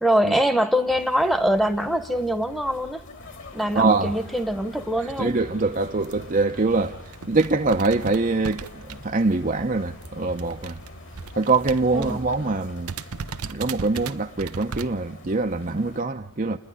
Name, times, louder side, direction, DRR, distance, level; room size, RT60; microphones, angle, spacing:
voice 1, 0.0-3.0 3.5-5.3 11.9-12.2, equal, ahead, 1.1 m, -23 dB
sound 1, 0.9-16.0, left 2 dB, 55° left, 2.5 m, -47 dB
sound 2, 3.2-12.7, left 1 dB, 70° left, 3.6 m, -45 dB
voice 2, 3.7-4.1 5.2-7.0 7.3-10.8 11.4-12.9 13.4-16.6, right 3 dB, 35° right, 0.7 m, -23 dB
sound 3, 6.0-6.3 6.8-6.9 7.1-9.4 9.7-12.3 12.6-12.7 12.9-14.9, right 5 dB, 85° right, 0.7 m, -36 dB
29.0 x 10.5 x 9.9 m
head